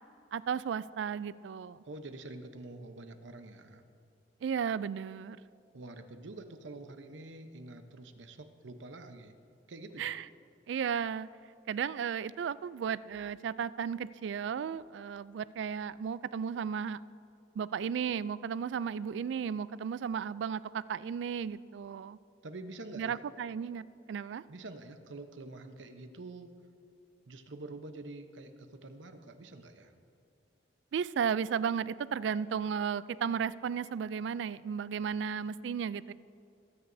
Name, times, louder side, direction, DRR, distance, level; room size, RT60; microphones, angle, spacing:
voice 1, 0.3-1.8 4.4-5.4 10.0-10.3 10.7-11.3 11.7-17.0 17.6-22.2 23.0-24.4 30.9-36.1, right 7 dB, 70° right, 18 dB, 0.3 m, -34 dB
voice 2, 1.8-3.8 5.7-9.3 9.7-10.1 22.4-23.2 24.5-26.5 27.3-29.9, right 2 dB, 90° right, 8 dB, 0.8 m, -46 dB
21.5 x 9.6 x 2.7 m, 2.6 s
head